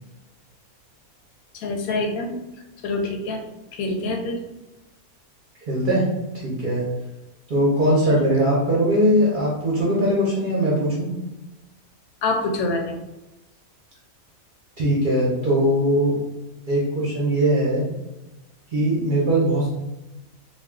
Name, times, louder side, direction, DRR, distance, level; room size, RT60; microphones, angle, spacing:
voice 1, 1.5-2.3 2.8-3.4 3.7-4.4 12.2-12.9, left 2 dB, 80° left, 3 dB, 1.0 m, -25 dB
voice 2, 5.7-6.1 6.4-6.8 7.5-11.1 14.8-16.2 16.7-17.9 18.7-19.7, equal, 50° right, -5 dB, 0.6 m, -20 dB
2.5 x 2.3 x 3.5 m, 0.99 s
omnidirectional pair, 1.5 m